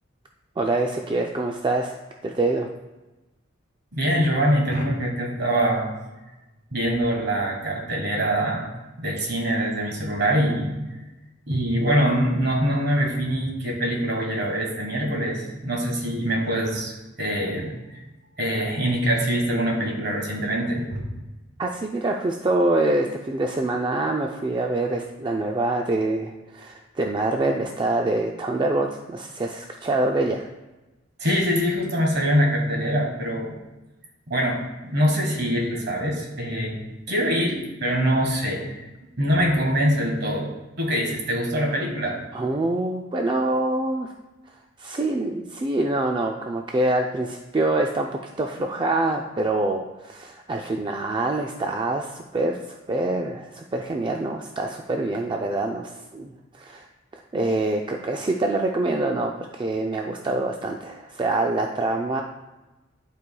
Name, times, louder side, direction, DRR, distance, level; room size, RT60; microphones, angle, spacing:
voice 1, 0.6-2.7 21.6-30.5 42.3-44.1 44.8-48.1 48.4-56.9 57.1-62.2, right 2 dB, 25° right, 2 dB, 0.3 m, -25 dB
voice 2, 3.9-5.9 6.7-8.7 9.0-10.7 11.5-18.0 18.4-21.1 31.2-33.5 34.3-34.6 34.8-36.8 37.1-38.8 39.2-40.5 40.8-42.2, equal, 55° right, 1 dB, 1.4 m, -24 dB
11.5 x 4.6 x 2.3 m, 1.1 s
head